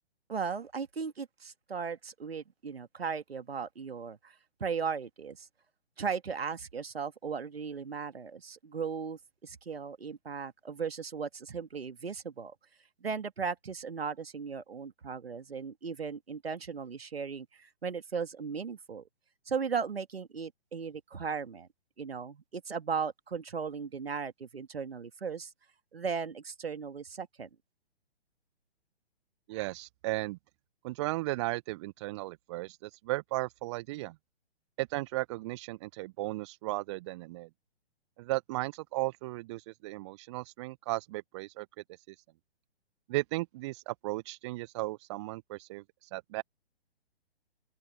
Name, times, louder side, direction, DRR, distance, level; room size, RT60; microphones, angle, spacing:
voice 1, 0.3-4.3 4.6-5.5 6.0-12.5 13.0-19.1 19.5-21.7 22.0-25.5 25.9-27.5, right 6 dB, 65° right, 2.2 m, -37 dB
voice 2, 29.5-30.4 30.8-34.1 34.8-37.5 38.2-41.7 42.1-42.2 43.1-46.4, right 20 dB, 25° right, 1.2 m, -35 dB
open air
figure-of-eight pair, 125°, 32 cm